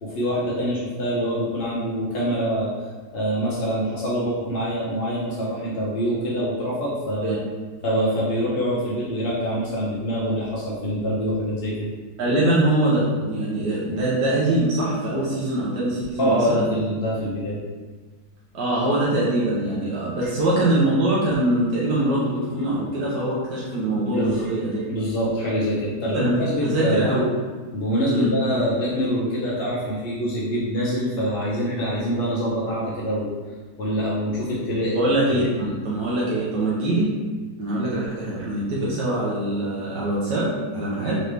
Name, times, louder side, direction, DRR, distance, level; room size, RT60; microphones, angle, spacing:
voice 1, 0.0-2.7 3.1-7.4 7.8-11.9 13.9-14.0 16.2-17.6 24.1-24.5 24.9-27.1 27.7-33.3 33.8-35.0 35.3-35.7, equal, 55° left, -6 dB, 0.6 m, -25 dB
voice 2, 12.2-16.7 18.5-24.8 26.1-26.4 26.6-27.3 28.1-28.3 34.9-37.1 37.6-41.2, right 1 dB, 75° right, -7 dB, 1.4 m, -23 dB
4.0 x 3.2 x 3.2 m, 1.4 s
omnidirectional pair, 1.8 m